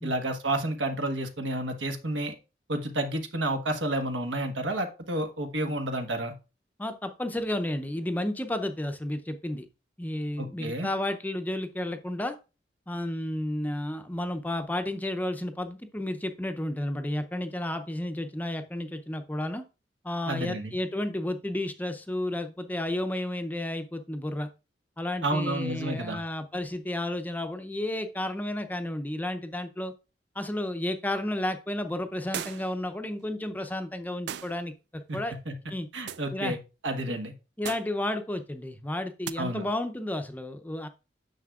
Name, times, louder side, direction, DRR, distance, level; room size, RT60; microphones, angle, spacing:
voice 1, 0.0-2.3 2.7-6.3 10.4-10.9 20.3-20.7 25.2-26.2 35.1-35.2 35.5-35.6 35.9-36.6 36.8-37.3 39.4-39.6, right 1 dB, 85° right, 6 dB, 1.3 m, -30 dB
voice 2, 6.8-9.7 10.0-12.4 12.9-19.6 20.0-24.5 25.0-29.9 30.4-35.3 35.7-35.9 36.3-36.6 37.1-37.2 37.6-40.9, left 1 dB, 10° left, 8 dB, 0.5 m, -32 dB
sound 1, 32.3-32.8 34.3-34.6 36.1-36.3 37.6-38.0 39.2-39.4, right 9 dB, 65° right, 0.4 m, -37 dB
9.4 x 6.5 x 2.4 m, 0.30 s
head